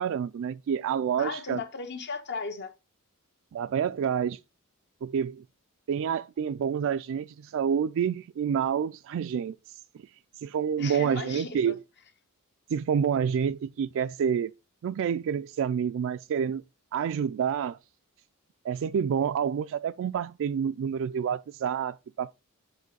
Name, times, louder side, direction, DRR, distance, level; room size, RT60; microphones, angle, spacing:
voice 1, 0.0-1.6 3.5-4.4 5.0-5.4 5.9-9.6 10.4-11.8 12.7-14.5 14.8-16.6 16.9-17.8 18.6-22.3, right 7 dB, 60° right, 0.3 m, -28 dB
voice 2, 1.2-2.7 10.8-11.7, left 4 dB, 55° left, 1.2 m, -36 dB
7.0 x 5.2 x 3.9 m
head